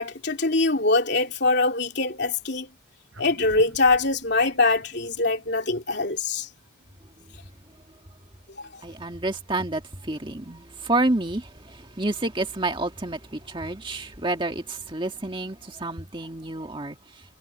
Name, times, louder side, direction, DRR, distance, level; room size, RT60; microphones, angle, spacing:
voice 1, 0.0-2.7 3.2-6.5 8.6-8.7, left 3 dB, 50° left, 3.1 m, -23 dB
sound 1, 3.1-8.0, equal, 75° right, 6.6 m, -50 dB
voice 2, 8.8-17.2, right 2 dB, 25° right, 2.0 m, -29 dB
head